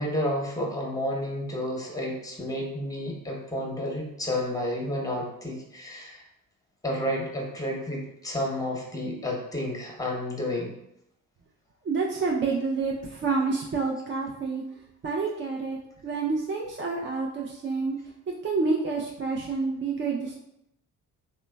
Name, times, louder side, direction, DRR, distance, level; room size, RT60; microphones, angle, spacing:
voice 1, 0.0-6.2 6.8-10.7, left 1 dB, 10° left, -1 dB, 0.8 m, -31 dB
voice 2, 11.8-14.6 15.0-15.8 16.0-18.0 18.4-20.3, right 4 dB, 30° right, -1 dB, 0.4 m, -28 dB
2.9 x 2.1 x 2.2 m, 0.80 s
supercardioid pair, 55°, 37 cm